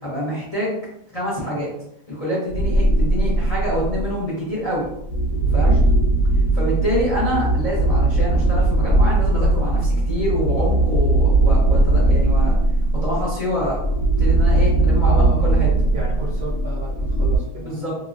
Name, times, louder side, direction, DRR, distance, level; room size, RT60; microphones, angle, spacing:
voice 1, 0.0-0.8 1.1-1.7 2.1-4.9 5.5-5.7 6.5-12.6 12.9-13.8 14.2-15.7 17.6-18.0, equal, 35° left, -7 dB, 0.7 m, -26 dB
sound 1, 2.5-4.2 4.8-17.4, right 2 dB, 75° left, 1.2 m, -19 dB
voice 2, 15.0-15.5 15.9-17.8, right 1 dB, 55° right, -6 dB, 0.8 m, -33 dB
3.0 x 2.6 x 2.4 m, 0.76 s
omnidirectional pair, 1.7 m